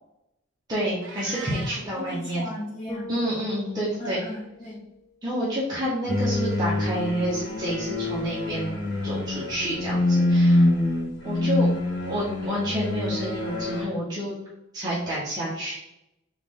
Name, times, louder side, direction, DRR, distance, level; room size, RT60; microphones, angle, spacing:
voice 1, 0.7-2.5 3.1-4.2 5.2-8.8 9.0-10.7 11.2-11.7 12.1-14.3 14.7-15.7, equal, 20° right, -9 dB, 1.0 m, -29 dB
Meow, 1.0-1.9, right 3 dB, 75° right, 0.7 m, -39 dB
voice 2, 1.9-3.1 4.0-4.8, left 1 dB, 30° left, -8 dB, 1.0 m, -36 dB
Bass guitar, 2.9-5.2, left 2 dB, 15° left, 0.5 m, -42 dB
sound 1, 6.1-13.8, left 1 dB, 80° left, 1.5 m, -25 dB
3.7 x 3.1 x 3.7 m, 0.86 s
head